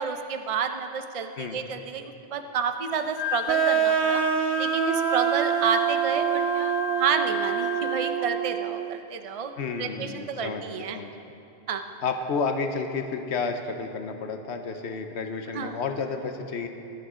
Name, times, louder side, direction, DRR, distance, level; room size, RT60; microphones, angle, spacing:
voice 1, 0.0-4.2 4.6-9.5 9.8-11.0 11.7-11.9 15.5-15.8, right 6 dB, 35° right, 7 dB, 0.7 m, -30 dB
Wind instrument woodwind instrument, 3.0-8.3, left 10 dB, 55° left, 0.8 m, -33 dB
sound 1, 3.5-9.0, right 10 dB, 80° right, 0.8 m, -26 dB
voice 2, 9.6-10.6 10.9-11.1 12.0-16.7, left 4 dB, 90° left, 5 dB, 1.1 m, -31 dB
21.0 x 11.5 x 3.7 m, 2.7 s
omnidirectional pair, 1.1 m